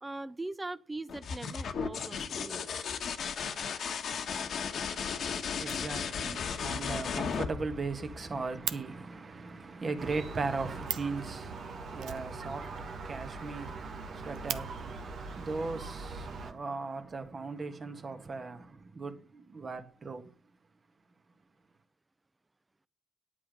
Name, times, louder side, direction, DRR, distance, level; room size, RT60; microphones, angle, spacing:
voice 1, 0.0-2.7 8.3-8.4, right 2 dB, 15° right, 0.6 m, -41 dB
sound 1, 1.1-8.7 10.4-11.0, left 6 dB, 60° left, 1.2 m, -35 dB
voice 2, 4.7-20.3, right 3 dB, 35° right, 1.7 m, -38 dB
Fire, 5.2-5.3 5.6-6.4 6.7-6.8 7.1-7.2 7.5-7.6 7.8-8.8 10.5-10.6 10.8-11.2 12.0-12.9 13.2-13.3 13.6-13.7 14.1-14.6 15.6-15.7 16.4-17.0, right 10 dB, 80° right, 0.7 m, -40 dB
Gull seagull, 10.0-16.5, right 4 dB, 65° right, 1.5 m, -42 dB
9.7 x 8.4 x 5.3 m
cardioid pair, 90°, 0 cm